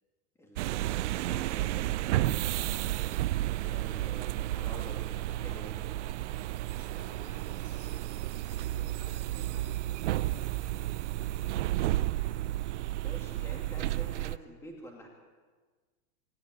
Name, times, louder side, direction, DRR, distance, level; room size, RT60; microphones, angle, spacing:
voice 1, 0.4-3.1 3.4-5.8 13.0-15.1, equal, 5° left, 0 dB, 2.4 m, -49 dB
sound 1, 0.6-14.4, right 15 dB, 55° right, 0.6 m, -32 dB
voice 2, 6.6-11.6, left 5 dB, 60° left, 3 dB, 3.9 m, -59 dB
25.0 x 12.5 x 9.8 m, 1.4 s
supercardioid pair, 170°, 43 cm